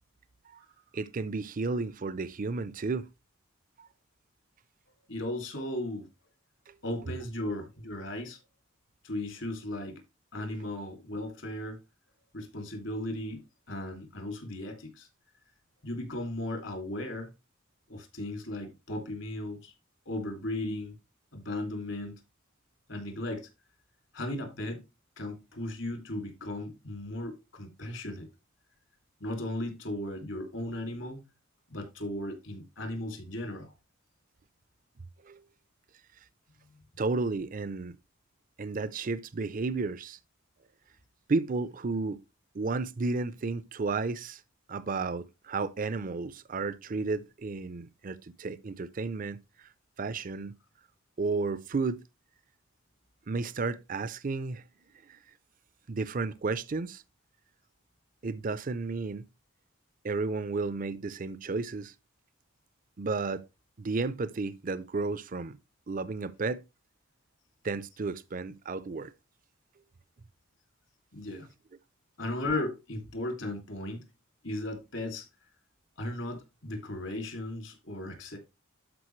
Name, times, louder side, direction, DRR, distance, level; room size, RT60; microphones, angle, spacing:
voice 1, 0.9-3.1 3.8-3.9 6.7-6.8 35.2-35.4 37.0-38.0 38.6-40.2 41.3-42.2 42.5-44.4 44.7-49.4 50.0-50.5 51.2-52.0 53.3-54.6 55.9-57.0 58.2-59.2 60.0-61.9 63.0-63.4 63.8-65.6 65.9-66.6 67.6-69.1, right 3 dB, 40° right, 0.5 m, -32 dB
voice 2, 5.1-6.1 6.8-8.4 9.0-10.0 10.3-11.8 12.3-15.1 15.8-17.3 17.9-19.7 20.1-20.9 21.3-22.1 22.9-23.5 24.1-24.9 25.2-28.3 29.2-31.2 31.7-33.7 71.1-71.5 72.2-74.0 74.4-75.3 76.0-78.4, left 1 dB, 65° left, 2.5 m, -36 dB
12.0 x 5.0 x 3.1 m
head